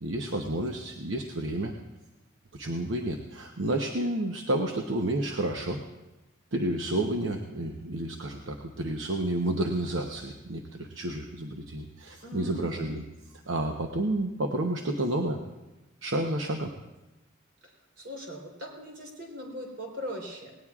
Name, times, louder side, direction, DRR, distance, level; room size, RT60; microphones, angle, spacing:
voice 1, 0.0-1.8 2.5-5.8 6.5-13.0 13.5-15.4 16.0-16.7, right 1 dB, 80° right, 2 dB, 0.9 m, -30 dB
voice 2, 12.2-12.9 17.6-20.5, equal, 60° right, -1 dB, 3.4 m, -40 dB
18.5 x 18.5 x 2.4 m, 1.0 s
head